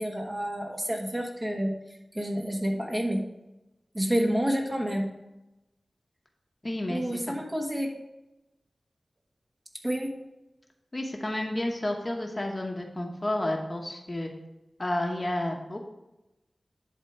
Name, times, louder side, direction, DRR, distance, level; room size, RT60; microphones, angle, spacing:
voice 1, 0.0-1.8 2.1-3.2 3.9-5.1 6.9-7.9 9.8-10.2, equal, 25° right, 1 dB, 1.5 m, -29 dB
voice 2, 6.6-7.3 10.9-14.3 14.8-15.9, left 1 dB, 35° left, 2 dB, 1.0 m, -31 dB
10.5 x 3.7 x 4.6 m, 0.97 s
wide cardioid pair, 60°, 0 cm